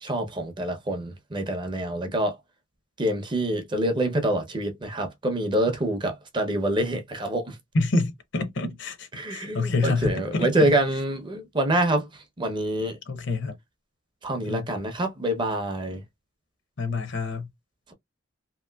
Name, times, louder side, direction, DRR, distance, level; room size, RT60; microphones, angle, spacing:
voice 1, 0.0-2.3 3.0-7.6 9.1-13.0 14.2-16.0, right 1 dB, 25° right, 0.6 m, -26 dB
voice 2, 7.7-10.5 13.1-13.6 14.4-14.7 16.8-17.5, left 3 dB, 60° left, 0.8 m, -27 dB
2.9 x 2.9 x 2.2 m
head